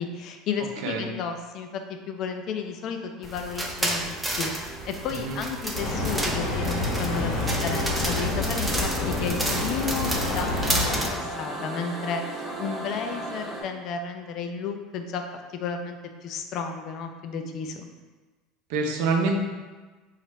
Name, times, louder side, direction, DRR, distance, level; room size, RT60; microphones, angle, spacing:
voice 1, 0.0-17.9, left 5 dB, 55° left, 5 dB, 0.4 m, -33 dB
voice 2, 0.8-1.1 5.2-5.4 18.7-19.4, right 3 dB, 70° right, 2 dB, 0.5 m, -25 dB
sound 1, 2.9-13.6, right 2 dB, 35° right, 1.3 m, -37 dB
sound 2, 3.2-11.1, right 1 dB, 10° right, 0.6 m, -31 dB
sound 3, 5.7-11.3, left 2 dB, 75° left, 0.9 m, -28 dB
3.1 x 2.4 x 4.1 m, 1.3 s
hypercardioid pair, 80°, 0 cm